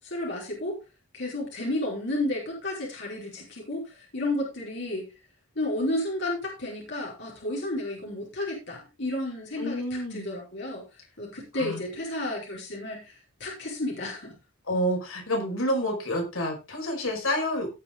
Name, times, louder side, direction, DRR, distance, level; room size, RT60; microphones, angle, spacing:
voice 1, 0.0-0.8 1.1-5.1 5.5-10.9 11.2-13.1 13.4-14.4, left 1 dB, 55° left, -2 dB, 4.9 m, -32 dB
voice 2, 9.6-10.2 11.5-11.8 14.6-17.7, equal, 85° left, 0 dB, 5.6 m, -28 dB
18.0 x 6.0 x 3.8 m, 0.28 s
head